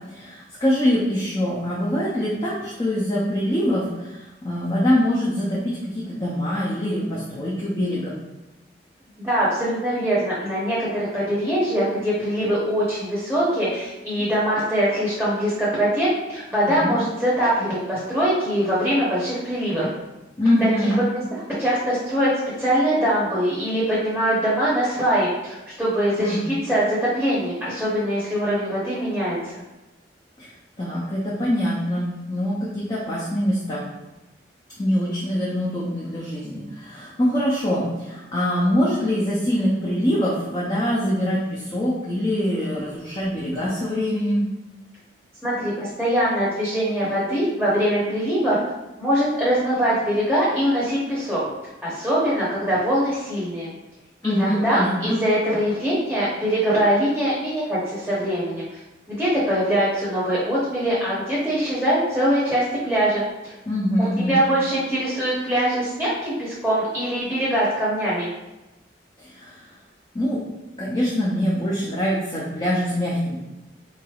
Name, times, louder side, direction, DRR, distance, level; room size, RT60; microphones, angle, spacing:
voice 1, 0.1-8.2 16.7-17.0 20.4-21.0 26.2-26.5 30.4-30.5 30.8-33.8 34.8-44.4 54.2-55.2 63.7-64.4 69.2-69.6 70.1-70.4 70.8-73.4, equal, 25° left, -6 dB, 0.5 m, -24 dB
voice 2, 9.2-19.9 20.6-22.3 22.6-29.5 45.4-48.6 49.0-51.4 51.8-53.7 54.2-58.8 59.1-63.5 64.2-68.3, equal, ahead, -9 dB, 0.8 m, -23 dB
3.9 x 3.1 x 2.3 m, 1.0 s
head